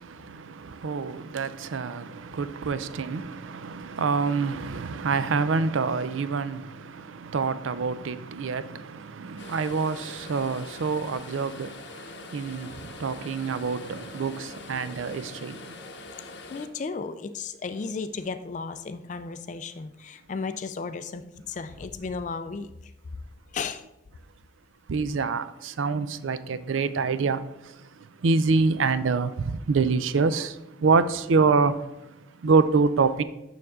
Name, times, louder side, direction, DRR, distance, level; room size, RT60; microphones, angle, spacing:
voice 1, 0.8-2.0 2.3-6.6 7.3-8.8 9.2-11.7 12.3-12.7 13.0-15.6 24.9-25.4 25.8-27.4 28.2-29.3 29.7-30.5 30.8-31.7 32.4-33.2, right 4 dB, 85° right, 0.5 m, -25 dB
sound 1, 9.4-16.7, left 3 dB, 60° left, 0.7 m, -43 dB
voice 2, 16.5-22.9 23.5-23.8, left 4 dB, 40° left, 0.3 m, -34 dB
6.9 x 6.3 x 3.6 m
head